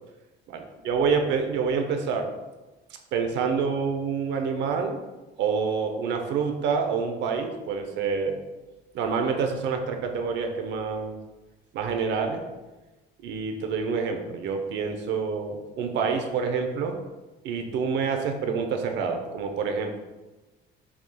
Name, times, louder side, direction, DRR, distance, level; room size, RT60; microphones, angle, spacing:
voice 1, 0.5-2.3 3.1-5.0 5.4-8.4 8.9-11.2 11.7-12.4 13.2-17.0 17.4-20.0, right 5 dB, 75° right, 4 dB, 0.7 m, -27 dB
6.1 x 3.6 x 2.2 m, 1.1 s
cardioid pair, 130°, 19 cm